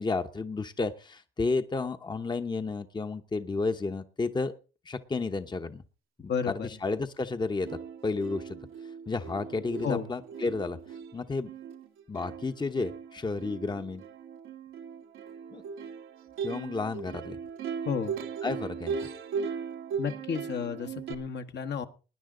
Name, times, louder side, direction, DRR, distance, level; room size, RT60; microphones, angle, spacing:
voice 1, 0.0-4.5 4.8-5.8 6.2-8.6 9.1-10.8 11.1-11.5 12.1-14.0 15.5-15.6 16.4-17.4 18.4-19.1, left 3 dB, 20° left, 8 dB, 1.0 m, -32 dB
voice 2, 6.3-6.8 9.8-10.1 17.8-18.2 20.0-21.8, left 7 dB, 60° left, 6 dB, 1.4 m, -32 dB
Plucked string instrument, 7.3-7.4 7.6-21.1, right 6 dB, 90° right, 1.6 m, -38 dB
20.0 x 10.0 x 3.8 m, 0.34 s
cardioid pair, 90°, 20 cm